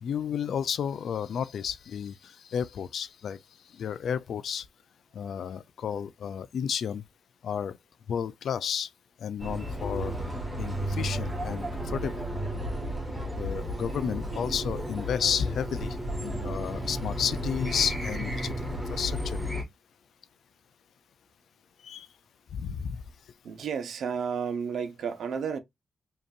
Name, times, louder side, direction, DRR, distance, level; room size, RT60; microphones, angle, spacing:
voice 1, 0.0-3.4 3.7-4.7 5.1-7.0 7.4-7.8 8.1-8.9 9.2-10.1 10.6-11.7 11.9-12.1 13.4-19.4 21.8-22.1 22.5-23.0, left 8 dB, 70° left, 0.4 m, -32 dB
sound 1, 9.4-19.6, equal, 5° left, 1.6 m, -33 dB
voice 2, 23.4-25.6, right 6 dB, 75° right, 1.0 m, -32 dB
5.2 x 2.9 x 2.4 m
wide cardioid pair, 140°, 0 cm